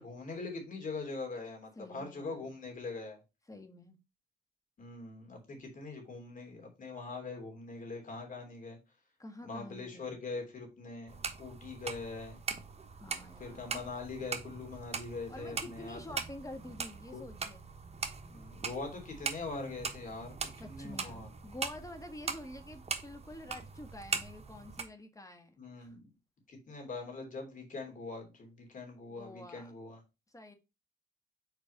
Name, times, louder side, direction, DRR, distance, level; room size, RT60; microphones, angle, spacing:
voice 1, 0.0-3.2 4.8-8.8 9.4-12.4 13.4-16.0 17.1-17.2 18.3-21.3 25.6-26.0 26.5-30.0, left 3 dB, 55° left, 3.0 m, -42 dB
voice 2, 1.8-2.5 3.5-4.0 9.2-10.1 12.9-13.7 15.3-17.6 20.6-26.0 29.1-29.7 30.3-30.5, left 1 dB, 20° left, 1.5 m, -48 dB
sound 1, 11.1-24.8, right 5 dB, 40° right, 1.2 m, -41 dB
4.9 x 4.5 x 5.4 m
cardioid pair, 80°, 17 cm